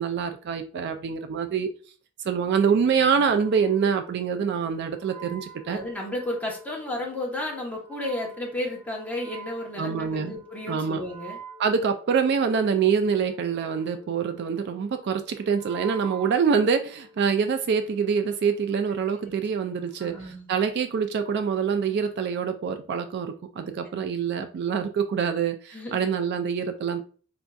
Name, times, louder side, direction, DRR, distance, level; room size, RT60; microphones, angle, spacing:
voice 1, 0.0-1.7 2.2-5.8 9.8-10.3 10.7-11.0 11.6-27.0, right 6 dB, 55° right, 7 dB, 0.3 m, -25 dB
Wind instrument woodwind instrument, 2.5-17.2, right 4 dB, 40° right, 1.0 m, -47 dB
voice 2, 5.7-11.4 19.2-19.3 20.0-20.5 25.7-26.0, left 1 dB, 10° left, -1 dB, 0.9 m, -33 dB
4.4 x 2.5 x 2.2 m, 0.40 s
head